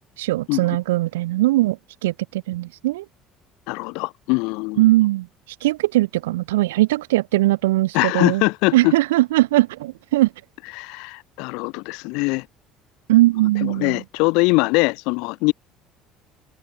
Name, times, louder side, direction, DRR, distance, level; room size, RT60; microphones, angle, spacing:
voice 1, 0.2-1.8 2.0-3.0 4.8-5.3 5.6-8.4 8.7-10.3 13.1-14.0, right 17 dB, 80° right, 0.6 m, -20 dB
voice 2, 3.7-4.8 7.9-8.9 10.7-12.5 13.6-15.5, left 28 dB, 70° left, 1.1 m, -22 dB
hypercardioid pair, 65°, 0 cm